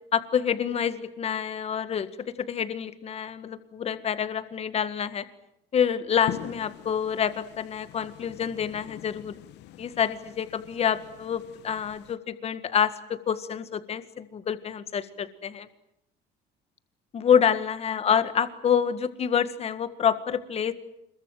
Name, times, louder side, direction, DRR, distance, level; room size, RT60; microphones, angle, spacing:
voice 1, 0.1-2.1 2.4-5.2 5.7-9.3 9.8-15.7 17.1-20.7, left 8 dB, 35° left, 12 dB, 1.8 m, -27 dB
sound 1, 6.3-12.1, left 13 dB, 70° left, 1.1 m, -43 dB
26.5 x 22.5 x 9.2 m, 0.79 s
cardioid pair, 150°, 19 cm